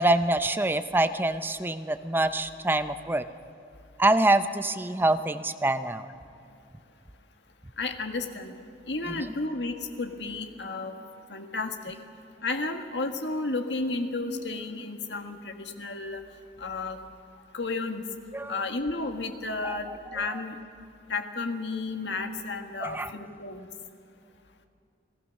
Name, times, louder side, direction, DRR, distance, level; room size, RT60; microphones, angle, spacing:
voice 1, 0.0-3.2 4.0-6.1 9.1-9.2 18.3-18.6 19.6-19.8 20.3-20.4 22.8-23.1, right 2 dB, 10° right, 10 dB, 0.7 m, -25 dB
voice 2, 7.8-8.5 8.9-11.0 11.3-12.0 12.4-16.2 16.6-17.0 17.5-18.1 18.5-20.6 21.1-23.7, left 3 dB, 75° left, 6 dB, 1.7 m, -32 dB
29.5 x 18.5 x 6.5 m, 2.5 s
head